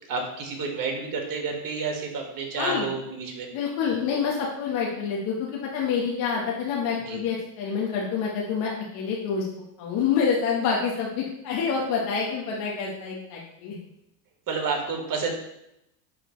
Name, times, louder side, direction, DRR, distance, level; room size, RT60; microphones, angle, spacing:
voice 1, 0.1-3.5 7.0-7.2 14.5-15.3, right 4 dB, 45° right, 1 dB, 1.8 m, -30 dB
voice 2, 3.5-9.5 9.8-13.8, left 6 dB, 70° left, -3 dB, 1.4 m, -27 dB
9.8 x 3.3 x 3.2 m, 0.83 s
supercardioid pair, 100°, 47 cm